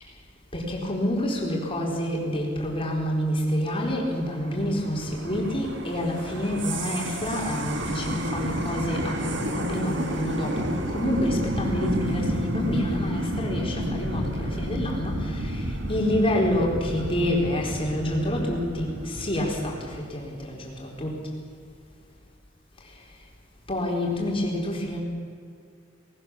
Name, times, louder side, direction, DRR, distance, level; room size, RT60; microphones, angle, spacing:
voice 1, 0.5-15.6 15.9-21.2 23.7-25.0, left 1 dB, 25° left, -1 dB, 4.2 m, -28 dB
sound 1, 3.5-20.0, right 1 dB, 65° right, 2.3 m, -31 dB
19.5 x 18.5 x 7.2 m, 2.3 s
head